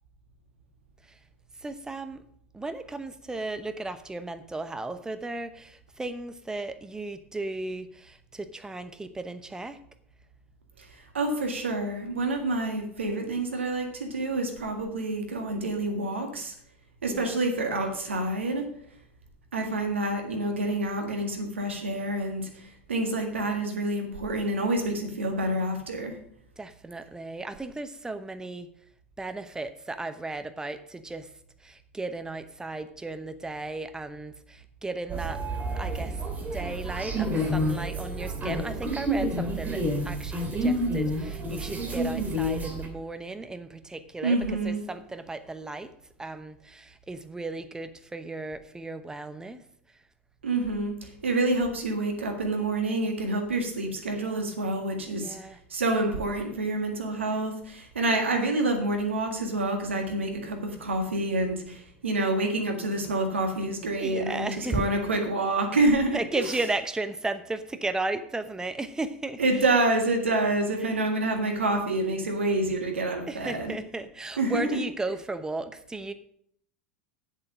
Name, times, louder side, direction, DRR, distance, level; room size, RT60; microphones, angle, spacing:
voice 1, 1.6-2.2 2.5-9.8 17.1-17.3 26.6-28.7 29.2-31.3 31.6-35.4 35.8-44.4 44.6-45.9 46.2-49.6 55.1-55.6 64.0-64.9 66.1-69.4 70.8-71.0 73.3-76.1, right 2 dB, 10° right, 10 dB, 0.9 m, -35 dB
voice 2, 10.8-16.5 17.0-18.7 19.5-26.2 44.2-44.8 50.4-55.4 55.7-66.2 69.4-73.7 74.4-74.8, right 2 dB, 85° right, 3 dB, 1.7 m, -27 dB
sound 1, 35.1-42.9, equal, 25° right, 2.6 m, -29 dB
7.9 x 7.3 x 6.0 m, 0.68 s
hypercardioid pair, 85°, 6 cm